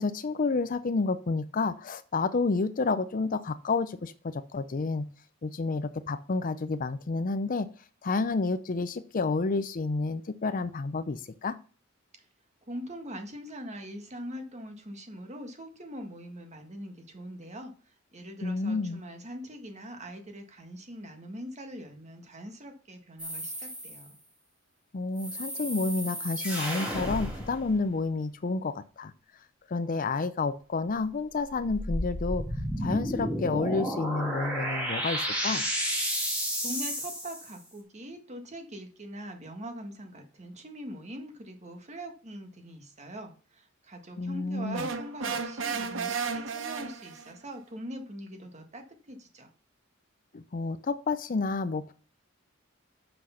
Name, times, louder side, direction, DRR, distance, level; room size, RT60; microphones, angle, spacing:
voice 1, 0.0-5.1 5.4-7.7 8.0-11.6 18.4-19.0 24.9-29.1 29.7-32.4 32.8-35.6 44.2-44.9 50.3-51.9, left 3 dB, 40° left, 13 dB, 0.5 m, -30 dB
voice 2, 12.7-17.7 18.1-24.1 36.2-49.5, equal, 35° right, 5 dB, 1.5 m, -42 dB
sound 1, 23.2-24.1 25.2-27.9 31.4-37.5, equal, 5° right, 2.5 m, -32 dB
sound 2, 44.7-47.4, right 5 dB, 65° right, 0.9 m, -33 dB
6.4 x 6.0 x 5.6 m, 0.40 s
head